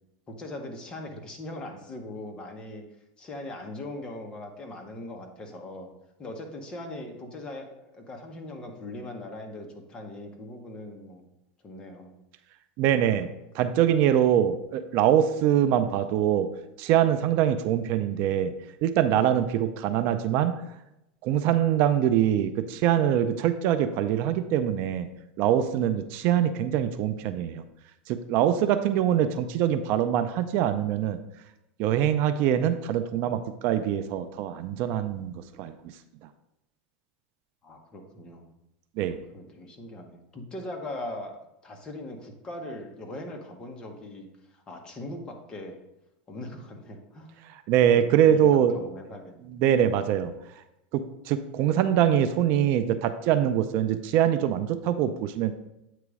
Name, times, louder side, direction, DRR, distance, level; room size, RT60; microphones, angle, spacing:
voice 1, 0.3-2.8 3.2-5.9 6.2-11.3 11.6-12.1 37.6-38.5 39.3-41.3 41.6-45.8 46.3-49.5, left 1 dB, 20° left, 3 dB, 0.8 m, -40 dB
voice 2, 12.8-13.3 13.5-16.5 16.8-18.5 18.8-20.5 21.2-25.1 25.4-27.6 28.1-31.2 31.8-35.7 39.0-39.2 47.7-48.7 49.5-50.3 50.9-55.5, right 10 dB, 45° right, 10 dB, 0.4 m, -23 dB
8.3 x 3.0 x 4.7 m, 0.88 s
supercardioid pair, 160°, 5 cm